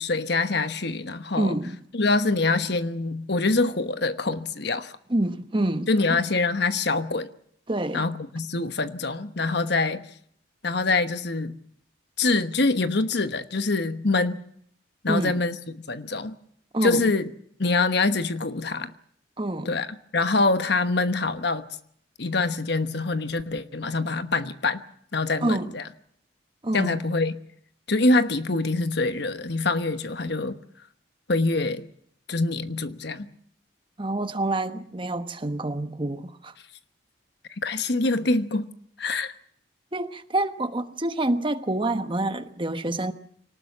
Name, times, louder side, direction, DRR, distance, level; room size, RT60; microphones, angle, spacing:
voice 1, 0.0-1.6 1.9-5.0 5.9-7.3 7.9-10.0 10.6-11.6 12.2-14.4 15.0-16.3 16.8-17.3 17.6-18.9 19.6-19.9 20.1-21.7 22.2-24.8 25.1-25.8 26.7-27.3 27.9-30.6 31.3-31.9 32.3-33.3 37.6-38.7 39.0-39.3, left 3 dB, 60° left, 1.2 m, -25 dB
voice 2, 1.4-1.8 5.1-6.2 7.7-8.1 15.1-15.4 16.7-17.1 19.4-19.7 25.4-25.7 26.6-27.0 34.0-36.5 39.9-43.1, right 1 dB, 25° right, 1.1 m, -27 dB
24.5 x 19.0 x 7.3 m
head